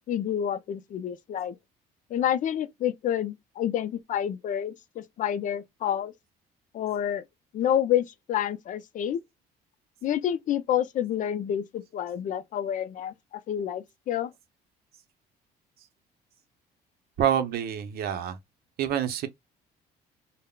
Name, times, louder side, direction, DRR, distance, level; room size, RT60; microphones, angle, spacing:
voice 1, 0.0-1.6 2.1-6.1 6.7-7.2 7.5-9.2 10.0-14.3, left 10 dB, 50° left, 0.4 m, -28 dB
voice 2, 17.2-18.4 18.8-19.3, right 9 dB, 65° right, 0.6 m, -27 dB
3.5 x 2.1 x 2.2 m
cardioid pair, 110°, 17 cm